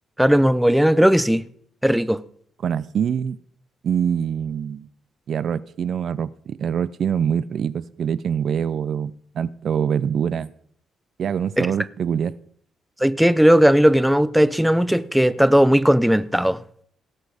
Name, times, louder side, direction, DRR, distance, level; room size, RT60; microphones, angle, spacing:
voice 1, 0.2-1.5 1.8-2.2 11.6-11.7 13.0-16.6, equal, ahead, 0.5 m, -17 dB
voice 2, 2.6-3.4 3.8-4.9 5.3-10.5 11.2-12.3, right 8 dB, 60° right, 0.4 m, -24 dB
17.5 x 6.3 x 4.8 m
cardioid pair, 90°, 0 cm